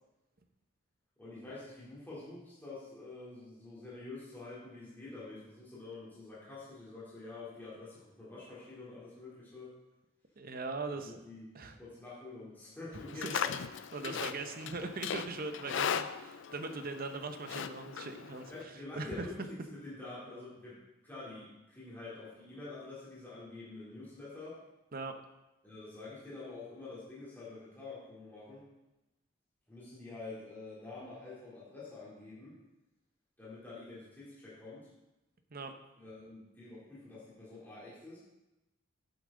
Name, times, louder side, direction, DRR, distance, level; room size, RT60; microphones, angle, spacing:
voice 1, 1.2-9.7 10.9-11.4 11.8-13.5 14.0-14.3 15.6-15.7 18.5-24.6 25.6-28.6 29.7-32.5 33.4-34.9 36.0-38.2, left 3 dB, 10° left, -9 dB, 3.1 m, -47 dB
voice 2, 10.4-11.1 11.5-11.8 13.1-13.4 13.9-19.3 24.9-25.2 35.5-35.7, right 3 dB, 45° right, 7 dB, 0.8 m, -40 dB
Livestock farm animals working animals, 12.9-18.6, left 7 dB, 60° left, 0.4 m, -38 dB
11.0 x 8.5 x 3.8 m, 0.99 s
head